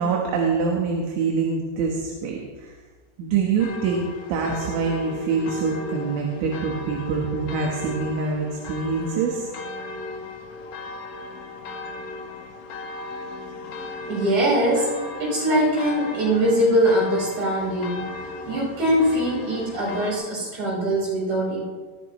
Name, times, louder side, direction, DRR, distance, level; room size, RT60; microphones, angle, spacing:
voice 1, 0.0-2.7 3.2-9.5, right 5 dB, 75° right, -1 dB, 3.8 m, -25 dB
sound 1, 3.6-20.1, left 3 dB, 75° left, 2.0 m, -36 dB
voice 2, 14.1-18.1 18.4-21.6, equal, 55° right, -6 dB, 8.0 m, -22 dB
20.0 x 15.5 x 3.2 m, 1.4 s
omnidirectional pair, 5.8 m